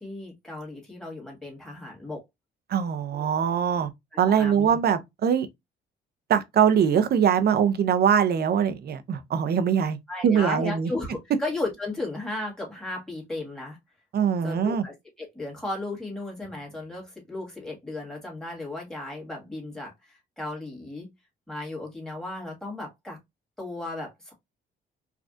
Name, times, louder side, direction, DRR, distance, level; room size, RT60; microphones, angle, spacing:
voice 1, 0.0-2.2 3.1-3.3 4.1-4.8 10.1-13.8 14.4-21.1 21.5-23.2 23.6-24.3, left 2 dB, 5° left, 1.8 m, -35 dB
voice 2, 2.7-3.9 4.2-5.5 6.3-10.0 10.2-10.9 14.1-14.8, right 8 dB, 55° right, 0.6 m, -22 dB
3.3 x 2.4 x 2.4 m
cardioid pair, 90°, 20 cm